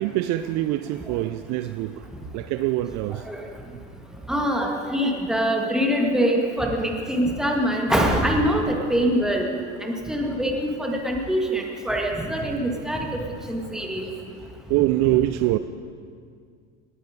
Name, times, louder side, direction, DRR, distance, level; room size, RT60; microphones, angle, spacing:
voice 1, 0.0-2.1 2.3-3.3 14.7-15.6, right 15 dB, 50° right, 11 dB, 0.5 m, -24 dB
voice 2, 4.3-9.5 9.8-13.1 13.5-14.1, equal, ahead, 0 dB, 2.1 m, -24 dB
18.5 x 9.2 x 5.2 m, 2.1 s
hypercardioid pair, 85°, 36 cm